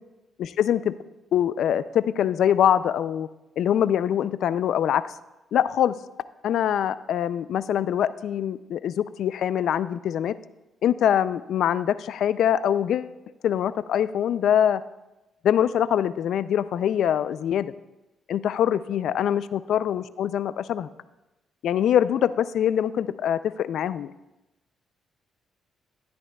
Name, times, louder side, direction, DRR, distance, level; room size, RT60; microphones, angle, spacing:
voice 1, 0.4-0.9 1.3-3.3 3.6-5.1 5.5-6.0 6.4-10.4 10.8-13.1 13.4-14.8 15.4-17.7 18.3-20.9 21.6-24.1, left 10 dB, 70° left, 16 dB, 0.3 m, -23 dB
13.0 x 10.5 x 2.3 m, 1.0 s
cardioid pair, 90°, 0 cm